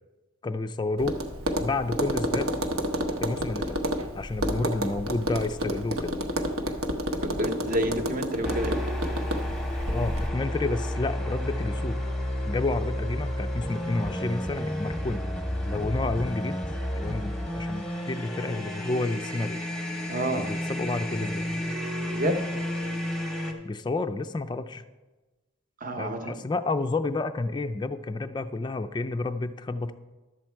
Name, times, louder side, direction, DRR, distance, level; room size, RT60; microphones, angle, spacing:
voice 1, 0.4-1.2 1.6-2.5 3.2-3.8 4.1-6.2 9.9-12.0 12.5-15.2 15.7-16.6 17.0-19.6 20.3-21.5 23.6-24.8 26.0-29.9, left 2 dB, 20° left, 9 dB, 0.3 m, -30 dB
Tap, 1.0-10.3, equal, 80° right, 1.0 m, -30 dB
voice 2, 7.2-8.8 20.1-20.5 22.1-22.4 25.8-26.4, right 1 dB, 40° right, 6 dB, 0.9 m, -28 dB
sound 1, 8.4-23.5, left 1 dB, ahead, 0.9 m, -31 dB
11.5 x 7.3 x 4.5 m, 1.2 s
head